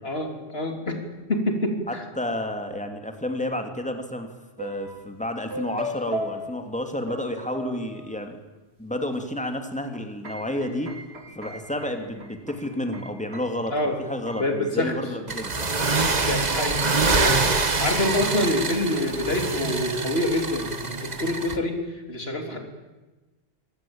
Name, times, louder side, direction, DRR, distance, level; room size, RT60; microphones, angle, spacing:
voice 1, 0.0-2.0 13.7-14.0 14.3-15.0 16.2-21.8 22.1-22.6, left 1 dB, 70° left, 5 dB, 3.7 m, -27 dB
voice 2, 1.9-4.3 4.6-8.4 8.8-10.9 11.3-15.5 17.3-17.5, left 1 dB, 5° left, 5 dB, 2.7 m, -31 dB
sound 1, 4.6-5.2 5.5-8.4 9.2-9.3 9.6-15.0 15.3-19.8, equal, 80° right, 2.8 m, -39 dB
sound 2, 15.3-21.6, right 3 dB, 40° right, 1.6 m, -25 dB
26.0 x 18.5 x 8.9 m, 1.1 s
omnidirectional pair, 1.1 m